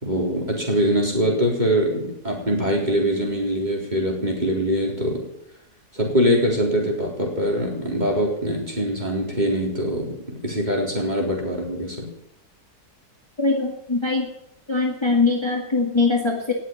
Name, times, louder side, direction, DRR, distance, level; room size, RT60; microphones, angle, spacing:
voice 1, 0.0-5.2 5.9-10.2 10.4-12.1, equal, 25° right, -1 dB, 4.1 m, -23 dB
voice 2, 13.4-14.3 14.7-16.5, left 3 dB, 15° left, 1 dB, 2.0 m, -22 dB
18.5 x 7.4 x 9.3 m, 0.81 s
omnidirectional pair, 1.7 m